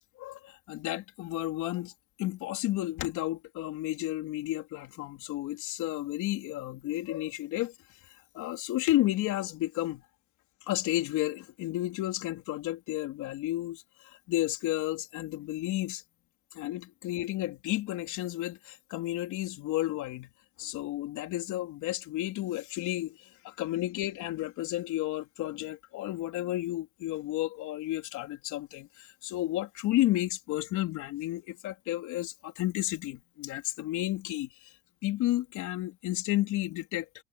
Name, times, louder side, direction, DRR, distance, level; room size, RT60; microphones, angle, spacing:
voice 1, 0.2-1.9 2.2-7.7 8.1-10.0 10.7-16.0 16.5-20.3 20.6-34.7 35.0-37.2, left 15 dB, 90° left, 3.8 m, -32 dB
cardioid pair, 130°, 29 cm